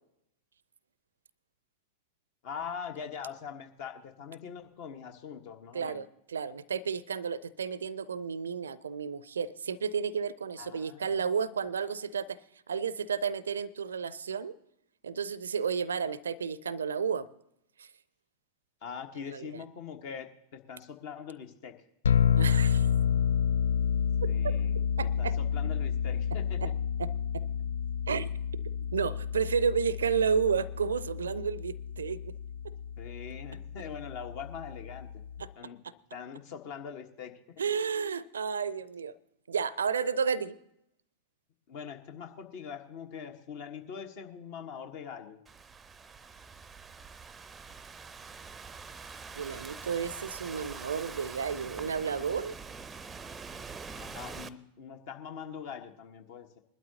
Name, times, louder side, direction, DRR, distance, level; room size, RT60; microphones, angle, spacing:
voice 1, 2.4-6.0 10.6-11.4 18.8-21.7 24.2-24.8 25.2-26.7 33.0-35.1 35.6-35.8 36.1-37.6 41.7-45.4 54.0-56.6, left 7 dB, 50° left, 6 dB, 1.4 m, -43 dB
voice 2, 5.7-12.4 12.7-14.5 15.0-17.3 17.8-17.9 19.3-19.6 22.4-22.9 25.0-25.3 26.6-26.7 27.0-27.1 28.1-28.3 28.9-32.3 37.6-39.1 39.5-40.6 49.3-52.5, right 6 dB, 70° right, 21 dB, 0.5 m, -32 dB
sound 1, 22.0-35.5, left 8 dB, 65° left, 0.3 m, -30 dB
Thunderstorm / Rain, 45.5-54.5, right 5 dB, 15° right, 0.6 m, -45 dB
21.0 x 12.0 x 2.9 m, 0.80 s
figure-of-eight pair, 90°, 0 cm